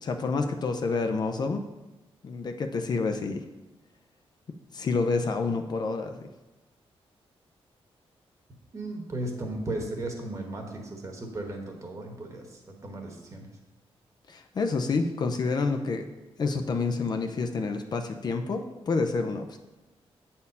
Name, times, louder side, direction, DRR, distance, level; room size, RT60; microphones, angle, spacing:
voice 1, 0.0-1.6 2.2-3.4 4.7-6.2 14.3-16.0 16.4-19.6, left 4 dB, 40° left, 6 dB, 0.5 m, -28 dB
voice 2, 8.7-13.5, right 2 dB, 30° right, 2 dB, 1.2 m, -36 dB
8.3 x 4.3 x 5.4 m, 1.1 s
wide cardioid pair, 150°, 10 cm